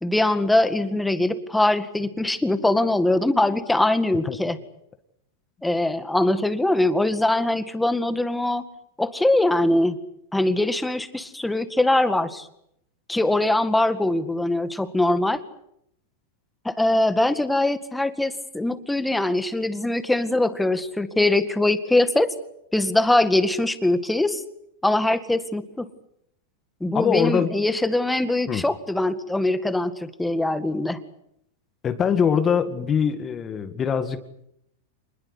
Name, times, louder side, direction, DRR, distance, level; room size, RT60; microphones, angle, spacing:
voice 1, 0.0-4.6 5.6-8.6 9.0-10.0 10.3-12.5 13.1-15.4 16.7-22.3 22.7-24.4 24.8-25.9 26.8-31.0, left 1 dB, 5° left, 11 dB, 1.9 m, -22 dB
voice 2, 26.9-27.6 28.5-28.7 31.8-34.4, left 7 dB, 25° left, 9 dB, 2.0 m, -23 dB
26.5 x 21.0 x 8.3 m, 0.75 s
supercardioid pair, 135°, 0 cm